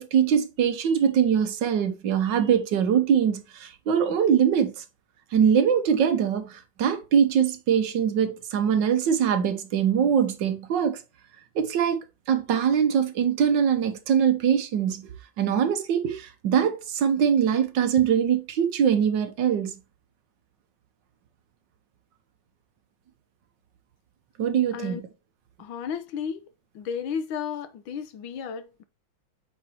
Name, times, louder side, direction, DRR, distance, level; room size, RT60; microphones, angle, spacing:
voice 1, 0.0-4.8 5.3-11.0 11.5-12.0 12.3-15.1 15.4-19.7 24.4-25.0, right 8 dB, 70° right, 1.5 m, -23 dB
voice 2, 25.6-26.4 26.7-28.8, left 7 dB, 85° left, 1.6 m, -33 dB
8.0 x 4.3 x 2.9 m
omnidirectional pair, 2.1 m